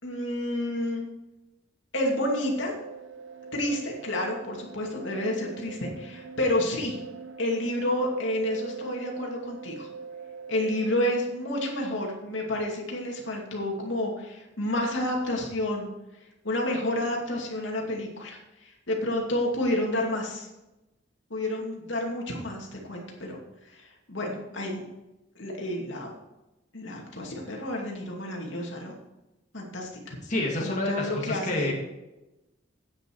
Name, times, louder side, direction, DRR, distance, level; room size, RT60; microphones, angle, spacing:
voice 1, 0.0-1.0 1.9-2.8 3.5-7.0 7.4-9.9 10.5-15.9 16.4-20.5 21.3-23.4 23.7-24.9 25.4-26.1 26.7-29.0 29.5-30.2 30.6-31.7, left 1 dB, 75° left, -1 dB, 2.4 m, -30 dB
sound 1, 2.2-11.1, right 5 dB, 70° right, 0.9 m, -42 dB
voice 2, 30.2-31.7, left 1 dB, 40° left, -2 dB, 2.1 m, -29 dB
9.6 x 9.1 x 4.6 m, 0.99 s
head